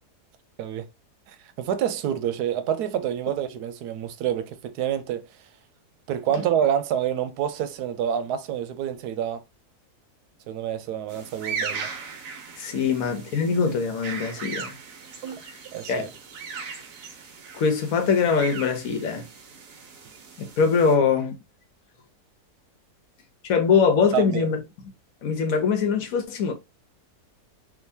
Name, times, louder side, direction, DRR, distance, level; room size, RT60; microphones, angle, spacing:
voice 1, 1.3-5.3 6.1-9.4 10.5-11.9 15.2-15.4 15.7-16.1 24.1-24.5, right 9 dB, 90° right, 1.1 m, -27 dB
sound 1, 11.1-20.9, right 5 dB, 65° right, 1.2 m, -38 dB
voice 2, 12.6-14.8 15.9-16.1 17.5-19.3 20.4-21.4 23.4-24.6 25.2-26.5, left 5 dB, 65° left, 1.2 m, -22 dB
3.7 x 2.7 x 2.6 m
omnidirectional pair, 1.6 m